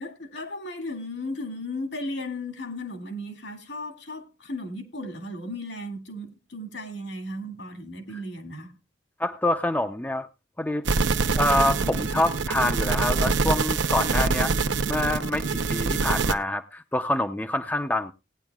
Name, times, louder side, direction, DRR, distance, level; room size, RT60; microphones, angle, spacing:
voice 1, 0.0-8.7, left 1 dB, 70° left, 2.2 m, -35 dB
voice 2, 9.2-10.3 10.6-10.8 11.3-14.6 14.9-18.1, left 1 dB, 10° left, 0.5 m, -26 dB
sound 1, 10.9-16.3, right 4 dB, 75° right, 0.7 m, -25 dB
18.0 x 9.7 x 2.3 m
head